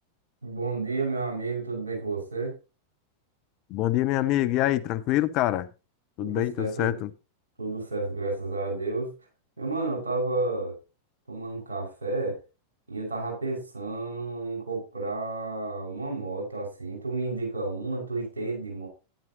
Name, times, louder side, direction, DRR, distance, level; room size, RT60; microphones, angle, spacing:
voice 1, 0.4-2.5 6.2-7.0 7.6-9.1 9.6-10.8 11.3-12.4 12.9-18.9, right 3 dB, 75° right, 5.8 m, -31 dB
voice 2, 3.7-5.7 6.2-7.1, left 14 dB, 40° left, 0.6 m, -25 dB
12.5 x 10.5 x 2.9 m
figure-of-eight pair, 90°, 0 cm